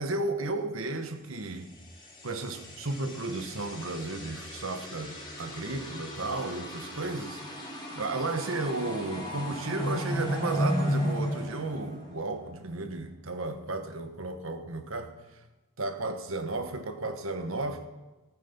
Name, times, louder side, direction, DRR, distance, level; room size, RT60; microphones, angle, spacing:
voice 1, 0.0-1.7 2.2-15.1 15.8-17.9, right 2 dB, 80° right, 1.3 m, -34 dB
sound 1, 1.8-12.4, equal, 20° left, 3.1 m, -35 dB
14.5 x 9.3 x 5.9 m
head